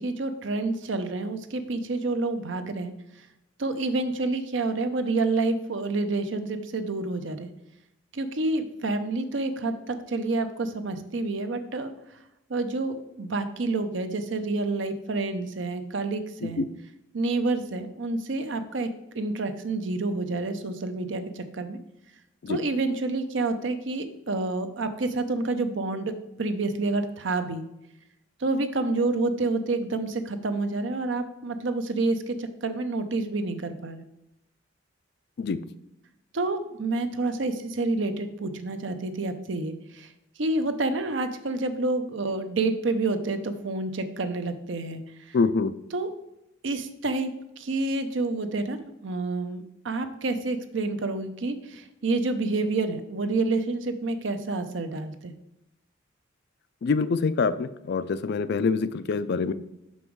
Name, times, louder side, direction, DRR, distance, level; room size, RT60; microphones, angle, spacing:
voice 1, 0.0-2.9 3.6-7.5 8.1-11.9 12.5-16.6 17.1-18.9 19.2-21.8 22.5-26.1 26.4-27.6 28.4-34.0 36.3-40.1 40.4-45.0 45.3-45.4 45.9-46.1 46.6-47.3 47.6-55.3, right 3 dB, 65° right, 8 dB, 0.7 m, -28 dB
voice 2, 45.3-45.7 56.8-59.5, left 4 dB, 55° left, 14 dB, 0.4 m, -25 dB
6.1 x 5.5 x 4.7 m, 0.87 s
head